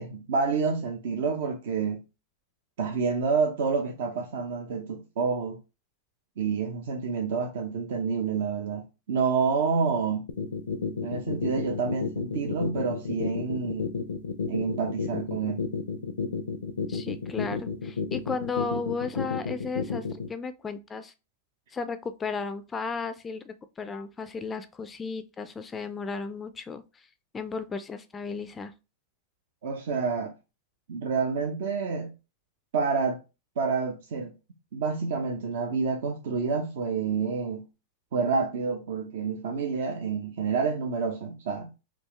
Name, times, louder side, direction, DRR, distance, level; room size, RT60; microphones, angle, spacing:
voice 1, 0.0-2.0 2.8-5.6 6.4-10.3 11.0-13.9 14.5-15.6 29.6-30.3 30.9-32.1 32.7-33.2 33.6-34.3 34.7-37.7 38.1-41.7, right 5 dB, 70° right, 0.7 m, -28 dB
sound 1, 10.3-20.3, left 5 dB, 90° left, 0.5 m, -31 dB
voice 2, 16.9-21.1 21.7-26.8 27.3-28.7, left 4 dB, 20° left, 0.3 m, -34 dB
3.5 x 2.4 x 3.1 m
hypercardioid pair, 125°, 0 cm